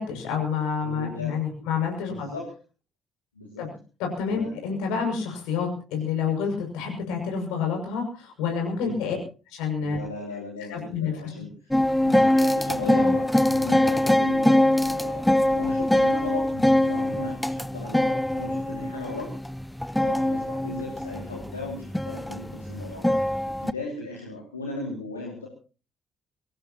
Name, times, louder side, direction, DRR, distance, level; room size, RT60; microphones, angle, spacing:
voice 1, 0.0-2.3 3.6-3.7 4.0-9.2 9.5-10.0 10.7-11.1, left 6 dB, 65° left, 2 dB, 6.4 m, -28 dB
voice 2, 0.8-1.3 2.1-2.5 3.3-3.6 4.3-4.5 8.8-9.2 9.8-11.7 12.0-19.3 20.0-25.5, left 2 dB, 85° left, -1 dB, 2.6 m, -37 dB
sound 1, 11.7-23.7, left 1 dB, 5° left, 0.7 m, -23 dB
24.0 x 17.5 x 3.0 m, 0.36 s
figure-of-eight pair, 45°, 0 cm